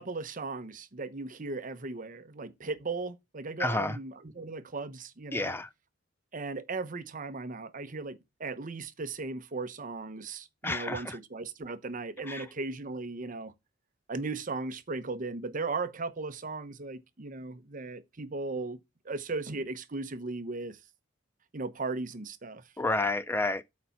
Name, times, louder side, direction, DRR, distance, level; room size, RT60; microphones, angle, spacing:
voice 1, 0.0-5.6 6.3-13.5 14.1-18.8 19.0-20.8 21.5-22.6, right 3 dB, 45° right, 0.9 m, -37 dB
voice 2, 3.6-3.9 5.3-5.7 10.6-11.0 12.3-12.4 22.8-23.6, left 2 dB, 10° left, 0.4 m, -29 dB
8.4 x 4.3 x 5.8 m
head